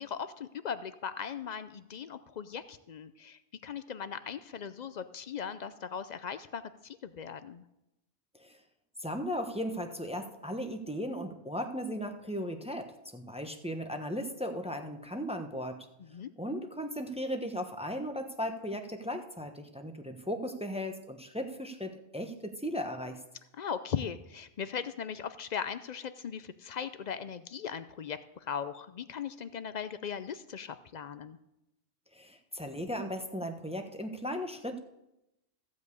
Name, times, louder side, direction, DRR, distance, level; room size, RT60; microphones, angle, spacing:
voice 1, 0.0-7.6 16.1-16.3 23.5-31.4, left 7 dB, 65° left, 12 dB, 0.4 m, -39 dB
voice 2, 9.0-15.8 16.4-23.2 32.1-34.8, equal, 5° right, 5 dB, 0.8 m, -36 dB
14.5 x 5.3 x 8.2 m, 0.89 s
omnidirectional pair, 1.3 m